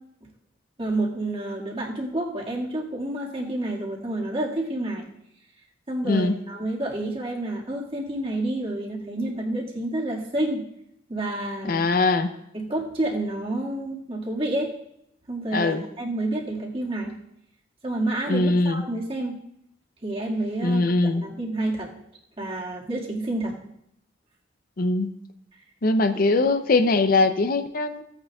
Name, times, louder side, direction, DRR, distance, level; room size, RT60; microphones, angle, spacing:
voice 1, 0.8-5.1 5.9-10.6 11.1-11.8 12.5-14.7 15.3-17.2 17.8-19.4 20.0-21.9 22.4-23.5 26.3-26.4, right 1 dB, 30° right, -3 dB, 1.9 m, -29 dB
voice 2, 6.0-6.3 11.6-12.3 15.5-15.8 18.3-18.8 20.6-21.2 24.8-25.1 25.8-28.0, left 3 dB, 50° left, 9 dB, 0.6 m, -21 dB
16.0 x 8.9 x 2.3 m, 0.75 s
head